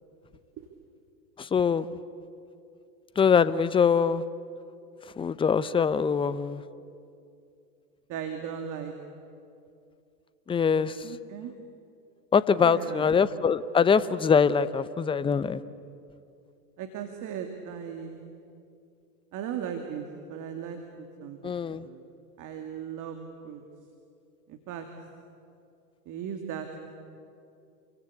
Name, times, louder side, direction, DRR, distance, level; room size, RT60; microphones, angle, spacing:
voice 1, 1.4-1.9 3.2-4.2 5.2-6.6 10.5-10.9 12.3-15.6 21.4-21.9, left 6 dB, 10° left, 15 dB, 0.6 m, -23 dB
voice 2, 8.1-8.9 11.0-11.6 12.6-13.2 16.8-18.2 19.3-22.0 22.4-23.2 23.4-23.6 24.5-24.9 26.1-26.8, right 8 dB, 35° right, 5 dB, 2.6 m, -37 dB
29.0 x 24.0 x 8.4 m, 2.5 s
hypercardioid pair, 105°, 50 cm